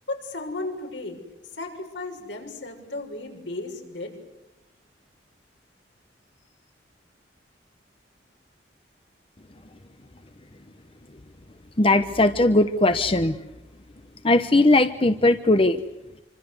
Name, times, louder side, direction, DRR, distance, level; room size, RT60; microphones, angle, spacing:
voice 1, 0.1-1.2 1.5-4.2, left 2 dB, 80° left, 3 dB, 6.7 m, -34 dB
voice 2, 11.8-13.4 14.2-15.8, left 2 dB, 30° left, 9 dB, 0.9 m, -19 dB
27.0 x 25.5 x 8.1 m, 0.95 s
head